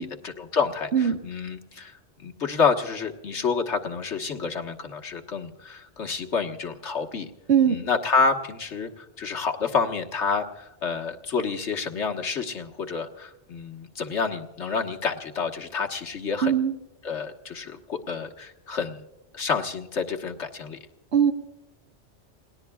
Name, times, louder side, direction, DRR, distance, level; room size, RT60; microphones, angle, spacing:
voice 1, 0.0-7.3 7.7-16.5 17.0-19.0 19.3-20.8, left 5 dB, 80° left, 3 dB, 1.8 m, -28 dB
voice 2, 16.4-16.7 21.1-21.3, right 8 dB, 75° right, 6 dB, 1.6 m, -20 dB
29.5 x 19.5 x 2.3 m, 0.98 s
omnidirectional pair, 1.2 m